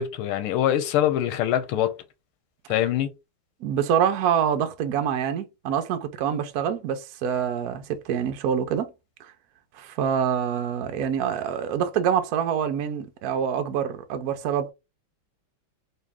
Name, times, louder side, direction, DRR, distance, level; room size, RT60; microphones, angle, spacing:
voice 1, 0.0-1.9 2.7-3.1, left 11 dB, 90° left, 1.5 m, -23 dB
voice 2, 3.6-8.9 9.2-9.3 9.7-14.7, right 8 dB, 75° right, 0.8 m, -26 dB
4.1 x 2.8 x 3.4 m
omnidirectional pair, 2.4 m